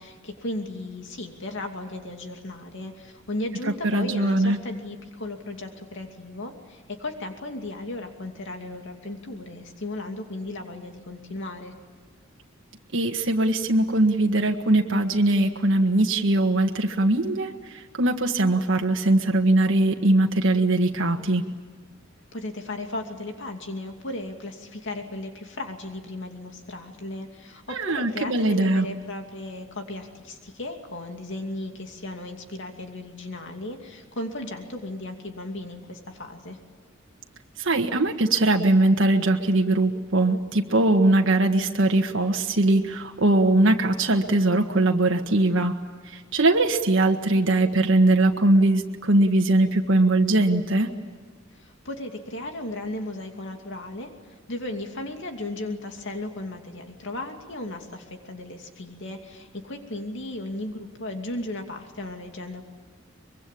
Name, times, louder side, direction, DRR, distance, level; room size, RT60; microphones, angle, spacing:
voice 1, 0.0-11.7 22.3-36.6 51.5-54.1 54.5-62.7, left 2 dB, 65° left, 4 dB, 2.7 m, -35 dB
voice 2, 3.8-4.6 12.9-21.4 27.7-28.9 37.6-45.7 46.0-50.9, right 2 dB, 65° right, 2 dB, 1.7 m, -21 dB
24.5 x 23.0 x 8.6 m, 1.6 s
head